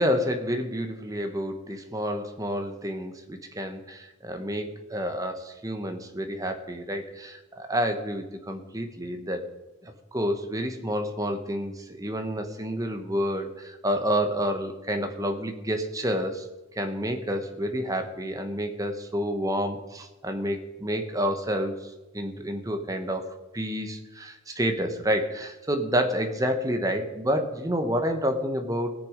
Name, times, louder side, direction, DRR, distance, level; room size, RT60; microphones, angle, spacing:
voice 1, 0.0-9.5 9.8-16.5 16.7-28.9, equal, 15° right, 6 dB, 1.0 m, -29 dB
18.5 x 6.9 x 5.0 m, 1.1 s
head